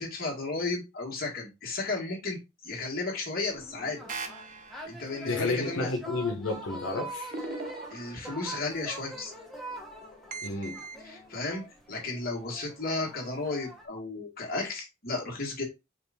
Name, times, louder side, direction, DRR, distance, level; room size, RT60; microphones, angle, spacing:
voice 1, 0.0-2.4 2.6-4.0 4.8-5.9 7.9-9.3 11.0-11.6 11.9-15.6, left 3 dB, 50° left, 1.6 m, -33 dB
sound 1, 3.5-13.9, right 1 dB, ahead, 1.0 m, -44 dB
sound 2, 4.1-5.1 7.3-8.5 10.3-11.0, right 3 dB, 45° right, 0.7 m, -40 dB
voice 2, 5.2-7.3 10.4-10.8, left 3 dB, 90° left, 0.9 m, -31 dB
5.0 x 2.5 x 3.4 m
head